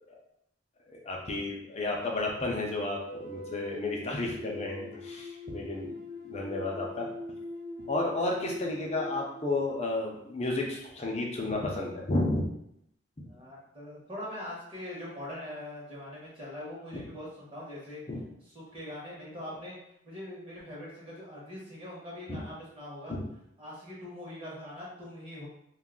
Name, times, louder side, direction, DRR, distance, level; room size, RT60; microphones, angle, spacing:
voice 1, 0.9-5.9 6.2-7.1 7.8-12.4 16.9-17.0 18.1-18.2 22.3-22.4 23.1-23.2, left 2 dB, 35° left, -1 dB, 0.5 m, -32 dB
sound 1, 2.8-10.1, left 2 dB, 60° right, 0.9 m, -42 dB
voice 2, 13.2-18.0 18.5-19.8 20.0-23.2 23.6-25.5, left 1 dB, 30° right, -5 dB, 0.9 m, -42 dB
2.5 x 2.3 x 3.7 m, 0.76 s
head